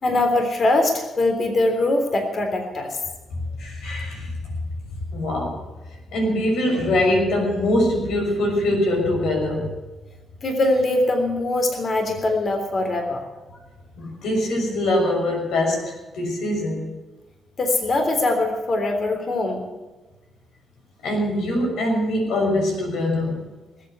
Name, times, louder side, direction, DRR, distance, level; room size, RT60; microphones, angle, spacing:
voice 1, 0.0-3.0 10.4-13.2 17.6-19.6, left 2 dB, 45° left, 4 dB, 3.5 m, -22 dB
voice 2, 3.6-4.3 5.1-5.6 6.1-9.7 14.0-16.9 21.0-23.4, left 1 dB, 85° left, 1 dB, 6.1 m, -23 dB
20.0 x 8.6 x 8.2 m, 1.2 s
cardioid pair, 85°, 0 cm